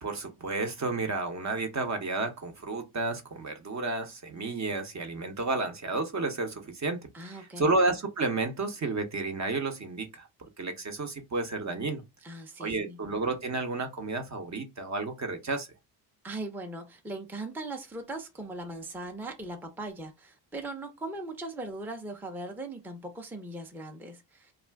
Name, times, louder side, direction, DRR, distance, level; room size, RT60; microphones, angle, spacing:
voice 1, 0.0-10.3 10.6-12.0 12.6-15.7, right 3 dB, 35° right, 0.8 m, -31 dB
voice 2, 7.1-7.7 12.2-13.0 16.2-24.5, right 2 dB, 5° right, 0.6 m, -39 dB
2.4 x 2.3 x 3.3 m
cardioid pair, 75°, 49 cm